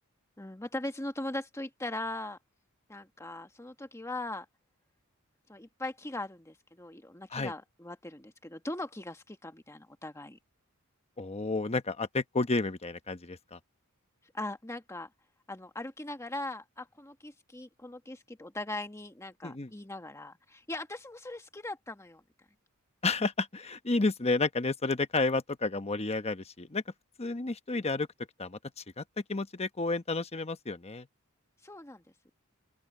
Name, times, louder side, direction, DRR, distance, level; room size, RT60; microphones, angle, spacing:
voice 1, 0.4-2.4 2.9-4.4 5.5-10.4 14.3-15.1 15.5-22.2 31.6-32.0, left 2 dB, 15° left, 1.5 m, -40 dB
voice 2, 11.2-13.6 19.4-19.7 23.0-26.8 27.2-28.1 28.4-28.6 29.0-29.1 29.3-31.1, left 3 dB, 30° left, 1.0 m, -31 dB
open air
head